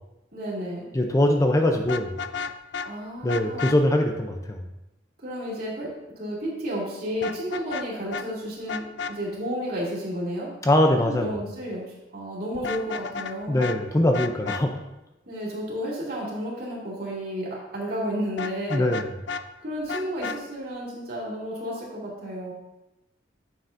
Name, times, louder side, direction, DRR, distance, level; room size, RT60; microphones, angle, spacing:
voice 1, 0.3-0.9 2.8-3.7 5.2-5.9 6.2-10.5 11.0-11.8 12.1-13.7 15.3-18.9 19.6-22.5, equal, 55° right, -5 dB, 2.5 m, -32 dB
voice 2, 0.9-2.1 3.2-4.6 10.6-11.4 13.5-14.8 18.7-19.1, left 1 dB, 15° left, 3 dB, 0.5 m, -22 dB
Vehicle horn car horn honking, 1.8-2.9 3.3-3.8 7.2-7.9 8.1-8.3 8.7-9.1 12.5-13.3 13.6-13.8 14.1-14.6 18.4-19.4 19.9-20.4, left 5 dB, 75° left, 0.4 m, -32 dB
9.3 x 6.9 x 2.6 m, 0.96 s
head